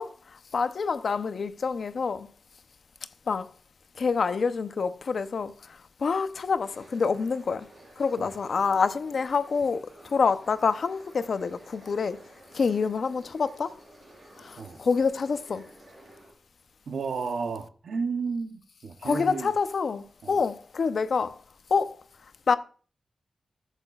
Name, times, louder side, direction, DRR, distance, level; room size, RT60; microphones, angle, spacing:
voice 1, 0.0-2.3 3.3-3.5 4.0-7.7 8.0-12.2 12.5-13.7 14.4-15.7 19.0-21.4 21.7-22.0 22.5-22.6, left 5 dB, 60° left, 0.7 m, -27 dB
sound 1, 6.6-16.3, right 1 dB, 35° right, 4.4 m, -52 dB
voice 2, 16.9-19.5 20.2-20.4, right 5 dB, 85° right, 0.8 m, -32 dB
14.5 x 8.1 x 2.4 m
wide cardioid pair, 140°, 0 cm